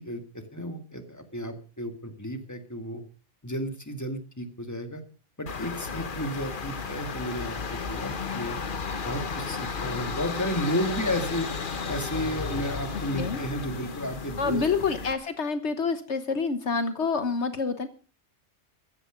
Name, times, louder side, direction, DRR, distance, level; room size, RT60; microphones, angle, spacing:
voice 1, 0.0-3.0 3.4-5.0 5.4-8.6 9.0-11.5 11.9-14.6, equal, 15° left, 7 dB, 2.2 m, -33 dB
sound 1, 5.5-15.1, left 5 dB, 45° left, 1.3 m, -33 dB
voice 2, 14.4-17.9, left 5 dB, 65° left, 10 dB, 1.4 m, -27 dB
15.0 x 12.5 x 5.2 m, 0.37 s
omnidirectional pair, 1.2 m